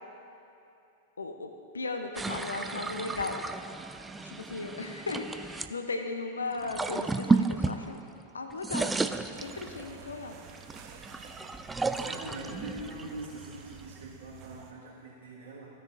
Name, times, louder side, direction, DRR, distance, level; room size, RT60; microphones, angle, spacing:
voice 1, 1.2-3.4 4.2-8.0 8.3-8.9 9.4-10.3, left 3 dB, 75° left, 5 dB, 0.6 m, -36 dB
sound 1, 2.2-5.7 6.5-8.3 8.5-10.0 10.5-14.0, right 3 dB, 10° right, 0.3 m, -33 dB
sound 2, 9.3-14.7, right 7 dB, 35° right, 0.8 m, -50 dB
voice 2, 11.9-15.7, right 2 dB, 65° right, -8 dB, 1.7 m, -43 dB
15.0 x 6.6 x 2.8 m, 2.8 s
figure-of-eight pair, 95°, 0 cm